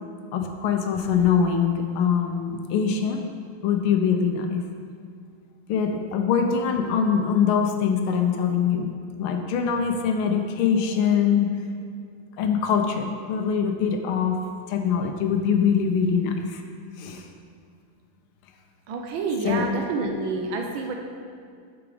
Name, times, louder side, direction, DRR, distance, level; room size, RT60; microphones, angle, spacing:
voice 1, 0.3-3.2 3.6-4.6 5.7-8.9 9.2-11.5 12.4-14.4 14.7-16.6 17.0-17.2 19.4-19.6, left 7 dB, 80° left, 4 dB, 1.5 m, -23 dB
voice 2, 18.9-20.9, right 4 dB, 75° right, 2 dB, 1.3 m, -28 dB
5.9 x 5.0 x 4.8 m, 2.2 s
omnidirectional pair, 2.4 m